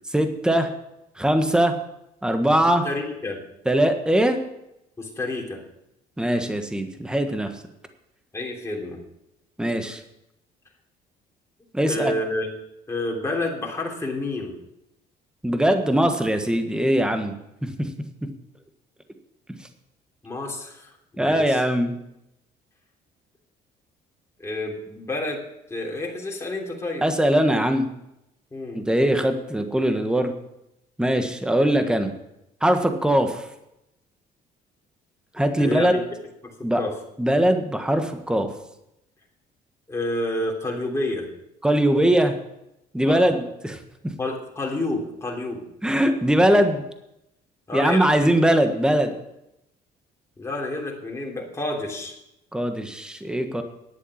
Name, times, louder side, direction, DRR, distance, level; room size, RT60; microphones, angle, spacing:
voice 1, 0.1-0.7 1.2-1.7 2.2-2.9 3.6-4.4 6.2-7.5 9.6-10.0 11.7-12.1 15.4-17.3 17.6-17.9 21.2-21.9 27.0-27.9 28.7-30.3 31.0-32.1 32.6-33.5 35.3-35.9 36.6-36.8 37.2-38.5 41.6-42.3 42.9-43.8 45.8-46.8 47.7-49.1 52.5-53.6, right 1 dB, 5° right, 7 dB, 1.4 m, -21 dB
voice 2, 2.8-3.4 5.0-5.6 8.3-9.0 11.8-12.5 12.9-14.5 20.2-21.6 24.4-25.4 25.7-27.0 28.5-28.8 35.6-36.0 36.7-36.9 39.9-41.3 43.1-43.3 44.2-45.6 47.7-48.2 50.4-52.2, left 2 dB, 15° left, -1 dB, 3.2 m, -29 dB
10.5 x 8.4 x 7.2 m, 0.85 s
cardioid pair, 110°, 17 cm